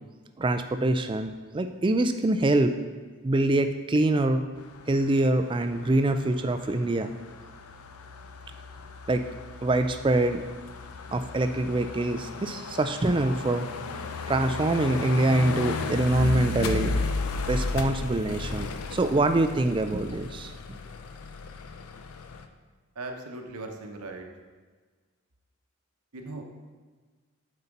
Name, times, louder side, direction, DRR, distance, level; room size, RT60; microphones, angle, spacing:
voice 1, 0.4-2.7 3.2-4.4 4.9-7.1 9.1-9.3 9.6-10.4 11.1-13.7 14.3-20.8, right 2 dB, 20° right, 8 dB, 0.3 m, -25 dB
sound 1, 4.6-22.5, left 3 dB, 80° left, 0.5 m, -35 dB
voice 2, 22.9-24.3 26.1-26.4, right 2 dB, 90° right, 4 dB, 1.0 m, -38 dB
8.1 x 4.2 x 5.2 m, 1.4 s
head